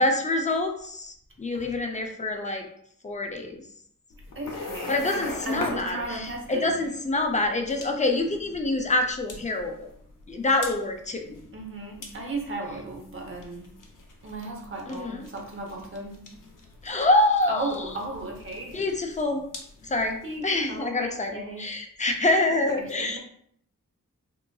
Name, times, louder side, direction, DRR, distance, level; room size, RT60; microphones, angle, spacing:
voice 1, 0.0-2.7 3.0-3.6 4.9-9.9 10.3-11.2 14.9-15.2 16.8-17.8 18.7-19.4 19.8-23.2, left 2 dB, 20° left, 4 dB, 0.4 m, -26 dB
sound 1, 4.1-20.4, left 3 dB, 70° left, 0.7 m, -43 dB
voice 2, 4.3-6.8 11.5-13.7 14.2-16.3 17.5-18.8 20.2-21.7 22.5-23.2, right 2 dB, 40° right, 0 dB, 0.8 m, -36 dB
3.7 x 2.5 x 2.3 m, 0.67 s
wide cardioid pair, 90°, 33 cm